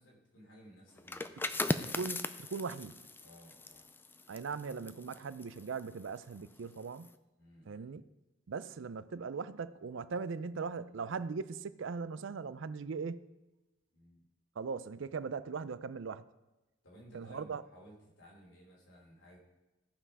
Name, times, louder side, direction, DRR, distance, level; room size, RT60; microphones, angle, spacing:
voice 1, 0.0-1.8 3.2-3.9 7.4-7.9 13.9-14.2 16.8-19.4, equal, 85° left, 3.2 m, -57 dB
sound 1, 1.0-6.5 6.8-7.1, left 2 dB, 10° left, 0.4 m, -39 dB
voice 2, 1.9-3.0 4.3-7.1 7.7-8.0 8.5-13.2 14.6-16.2 17.1-17.6, right 5 dB, 75° right, 0.4 m, -39 dB
15.0 x 5.7 x 4.8 m
head